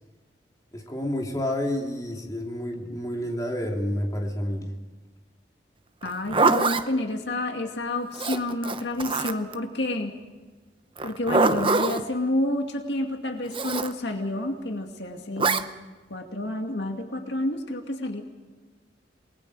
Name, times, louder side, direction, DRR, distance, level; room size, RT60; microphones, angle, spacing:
voice 1, 0.7-4.7, left 1 dB, 20° left, 0 dB, 3.1 m, -29 dB
voice 2, 6.0-10.1 11.0-15.7 16.1-18.2, left 1 dB, 70° left, 3 dB, 2.3 m, -29 dB
Zipper (clothing), 6.0-6.8 8.1-9.5 11.0-12.0 13.5-13.9 15.4-15.6, right 3 dB, 30° right, 0.9 m, -24 dB
28.5 x 20.0 x 4.9 m, 1.3 s
head